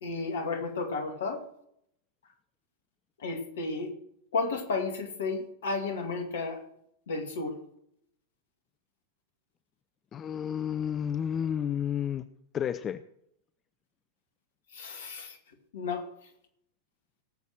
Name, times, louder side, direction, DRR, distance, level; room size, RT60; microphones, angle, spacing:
voice 1, 0.0-1.4 3.2-3.9 4.3-6.6 7.1-7.6 14.7-15.4 15.7-16.1, left 3 dB, 65° left, 5 dB, 2.3 m, -32 dB
voice 2, 10.1-12.2 12.5-13.0, left 9 dB, 25° left, 12 dB, 0.5 m, -31 dB
18.0 x 7.3 x 6.3 m, 0.72 s
figure-of-eight pair, 90°, 0 cm